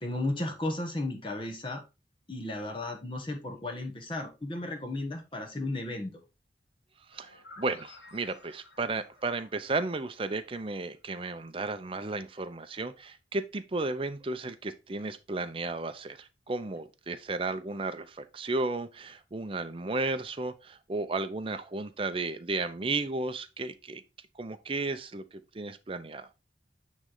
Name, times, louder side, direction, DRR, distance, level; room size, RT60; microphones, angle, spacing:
voice 1, 0.0-1.8 2.3-6.1, left 2 dB, 30° left, 1.1 m, -34 dB
sound 1, 7.1-10.9, left 2 dB, 75° left, 1.3 m, -54 dB
voice 2, 7.1-24.0 24.4-26.3, right 3 dB, 30° right, 0.6 m, -34 dB
9.3 x 3.2 x 3.9 m
head